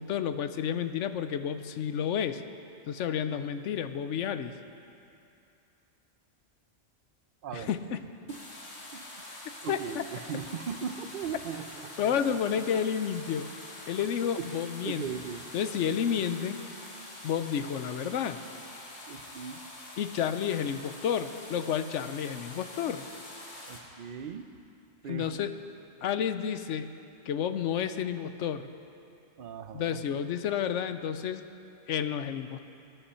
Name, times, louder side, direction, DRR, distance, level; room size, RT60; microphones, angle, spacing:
voice 1, 0.0-2.4 2.9-4.6 7.5-8.0 9.7-10.0 12.0-13.5 13.9-15.1 15.5-16.6 17.2-18.4 20.0-23.0 25.1-25.6 26.0-26.9 27.3-28.7 29.7-31.4 31.9-32.6, left 8 dB, 85° left, 10 dB, 1.0 m, -30 dB
voice 2, 7.4-7.7 8.3-8.4 8.9-9.0 9.6-12.4 12.7-12.8 14.0-14.1 14.4-14.5 14.8-15.5 19.1-19.6 23.6-24.5 25.0-25.4 29.4-30.0, right 7 dB, 55° right, 10 dB, 0.7 m, -38 dB
sound 1, 8.3-23.8, left 1 dB, 70° left, 2.2 m, -45 dB
19.5 x 12.0 x 4.3 m, 2.6 s
omnidirectional pair, 1.2 m